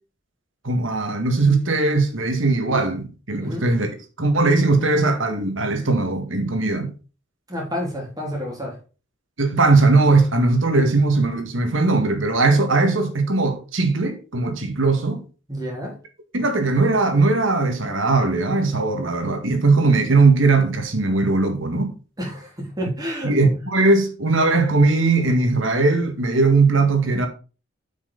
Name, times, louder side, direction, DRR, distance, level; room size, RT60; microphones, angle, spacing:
voice 1, 0.6-3.9 4.2-6.9 9.4-15.2 16.3-21.9 23.2-27.3, right 3 dB, 85° right, 1.8 m, -19 dB
voice 2, 7.5-8.8 15.5-16.0 22.2-23.3, equal, 20° right, 3.6 m, -29 dB
8.2 x 6.0 x 4.1 m
head